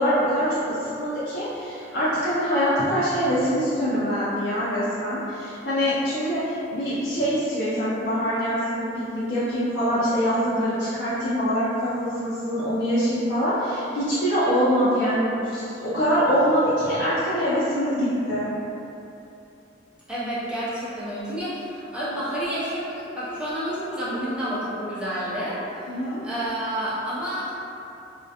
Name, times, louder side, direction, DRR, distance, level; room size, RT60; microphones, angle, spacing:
voice 1, 0.0-18.5 25.9-26.3, equal, 60° left, -12 dB, 0.4 m, -24 dB
voice 2, 20.1-25.9 26.2-27.5, equal, 5° right, -11 dB, 0.4 m, -29 dB
2.3 x 2.1 x 2.7 m, 2.8 s
head